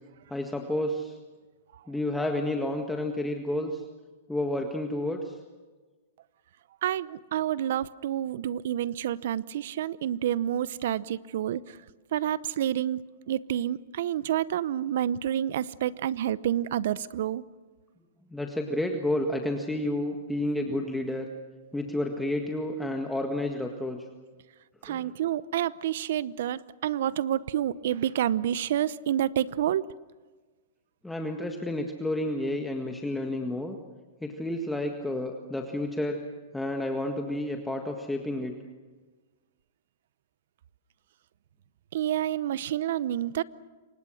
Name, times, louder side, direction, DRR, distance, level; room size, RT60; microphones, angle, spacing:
voice 1, 0.3-1.2 1.9-3.8 4.3-5.4 18.3-21.3 21.7-24.0 24.9-25.1 31.0-33.8 34.2-36.2 36.5-38.6, left 1 dB, 5° left, 3 dB, 1.7 m, -30 dB
voice 2, 6.8-11.6 12.1-13.0 13.3-17.4 24.8-29.8 41.9-43.4, right 11 dB, 65° right, 19 dB, 0.8 m, -28 dB
27.5 x 24.5 x 6.4 m, 1.3 s
hypercardioid pair, 130°, 0 cm